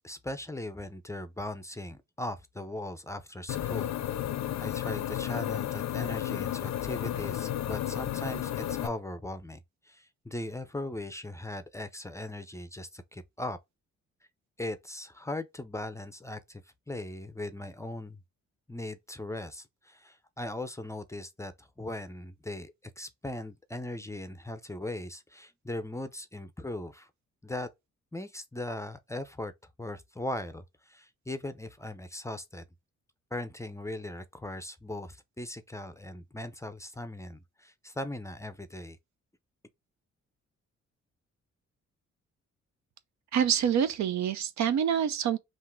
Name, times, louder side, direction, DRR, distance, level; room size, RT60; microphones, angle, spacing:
voice 1, 0.0-3.9 4.6-13.6 14.6-18.2 18.7-27.1 27.4-27.7 28.1-29.5 29.8-32.6 33.3-39.0, left 1 dB, 10° left, 0.5 m, -39 dB
sound 1, 3.5-8.9, left 12 dB, 65° left, 0.5 m, -32 dB
voice 2, 43.3-45.4, right 8 dB, 70° right, 0.6 m, -26 dB
3.6 x 2.5 x 4.4 m
cardioid pair, 75°, 29 cm